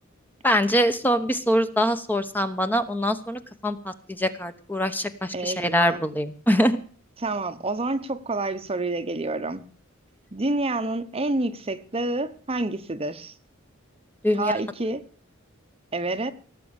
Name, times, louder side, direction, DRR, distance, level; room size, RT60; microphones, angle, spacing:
voice 1, 0.4-6.8 14.2-14.5, equal, 10° left, 0.9 m, -24 dB
voice 2, 5.3-6.1 7.2-9.6 10.3-13.3 14.3-15.0 15.9-16.3, right 2 dB, 30° right, 0.9 m, -28 dB
17.0 x 7.7 x 7.1 m
head